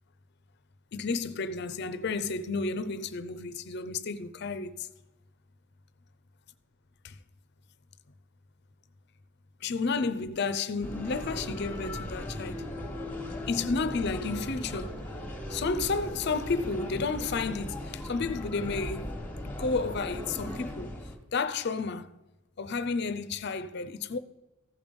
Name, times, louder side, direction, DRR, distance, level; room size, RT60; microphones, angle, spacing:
voice 1, 0.9-4.9 7.0-7.1 9.6-12.7 13.5-15.0 15.5-19.1 19.4-20.9 21.3-22.1 22.6-24.2, left 4 dB, 55° left, 0.5 m, -31 dB
sound 1, 10.8-21.2, left 1 dB, 10° left, 1.3 m, -38 dB
15.0 x 5.2 x 5.2 m
head